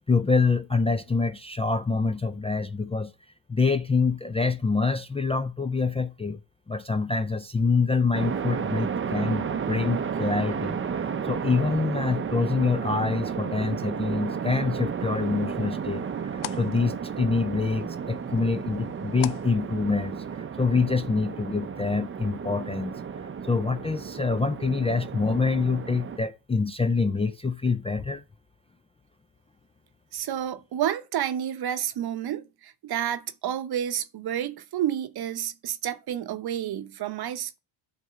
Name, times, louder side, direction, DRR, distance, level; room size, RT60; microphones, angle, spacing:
voice 1, 0.1-3.1 3.5-6.4 6.7-16.0 16.6-20.2 20.6-23.0 23.4-28.2, left 4 dB, 15° left, 0.4 m, -26 dB
sound 1, 8.1-26.2, right 7 dB, 25° right, 0.6 m, -32 dB
sound 2, 15.0-20.4, left 16 dB, 70° left, 0.6 m, -44 dB
voice 2, 30.1-37.6, right 10 dB, 50° right, 0.9 m, -30 dB
9.3 x 3.6 x 6.8 m
cardioid pair, 95°, 48 cm